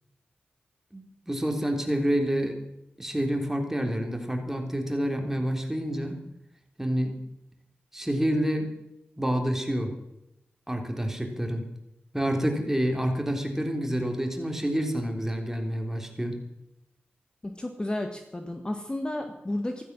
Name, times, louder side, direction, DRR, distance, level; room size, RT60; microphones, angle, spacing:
voice 1, 0.9-2.6 3.0-6.2 6.8-7.2 7.9-8.7 9.2-9.9 10.7-11.6 12.1-16.4, equal, 10° right, 3 dB, 3.5 m, -28 dB
voice 2, 17.4-19.8, left 1 dB, 20° left, 5 dB, 1.7 m, -32 dB
14.5 x 14.0 x 6.2 m, 0.87 s
cardioid pair, 60°, 4 cm